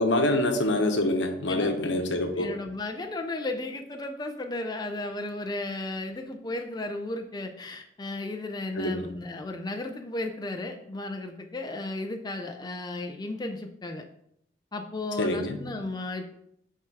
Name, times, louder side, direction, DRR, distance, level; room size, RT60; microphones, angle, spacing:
voice 1, 0.0-2.5 8.7-9.1 15.2-15.6, left 1 dB, 80° left, 5 dB, 0.9 m, -26 dB
voice 2, 2.4-14.0 14.7-16.3, left 2 dB, 25° left, 4 dB, 0.5 m, -34 dB
5.9 x 4.6 x 4.7 m, 0.73 s
head